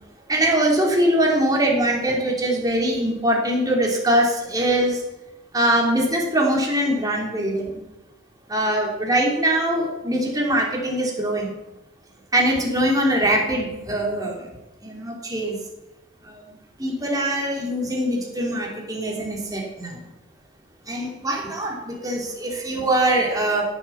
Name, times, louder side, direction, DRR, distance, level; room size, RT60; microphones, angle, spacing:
voice 1, 0.3-5.0 5.5-7.8 8.5-11.5 12.3-14.4 14.8-15.6 16.2-16.4 16.8-20.1 20.9-23.6, right 1 dB, 20° right, -1 dB, 3.3 m, -22 dB
16.5 x 7.9 x 7.2 m, 0.99 s
head